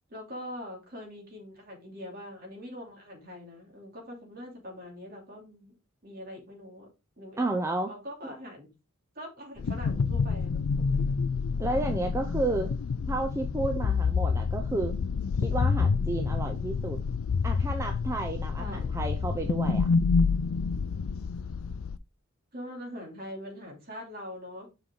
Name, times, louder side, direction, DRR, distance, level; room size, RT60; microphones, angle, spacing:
voice 1, 0.1-5.7 6.0-6.9 7.2-7.6 7.9-8.7 9.1-11.5 18.6-19.1 22.5-24.7, equal, 45° right, 0 dB, 2.9 m, -43 dB
voice 2, 7.4-7.9 11.6-12.7 13.1-14.9 15.4-17.0 17.4-19.9, right 2 dB, 15° right, 4 dB, 0.7 m, -31 dB
sound 1, 9.6-22.0, left 5 dB, 85° left, 0.4 m, -28 dB
7.3 x 5.1 x 3.7 m, 0.28 s
head